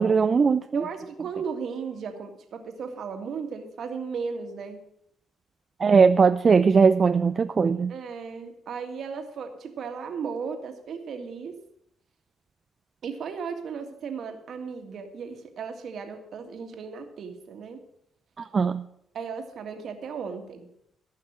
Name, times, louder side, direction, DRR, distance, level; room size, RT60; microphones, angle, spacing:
voice 1, 0.0-0.8 5.8-7.9 18.4-18.8, right 5 dB, 40° right, 10 dB, 0.4 m, -20 dB
voice 2, 0.7-4.8 7.9-11.6 13.0-17.8 19.1-20.7, right 6 dB, 65° right, 5 dB, 1.8 m, -35 dB
14.5 x 5.8 x 7.3 m, 0.74 s
cardioid pair, 90°, 0 cm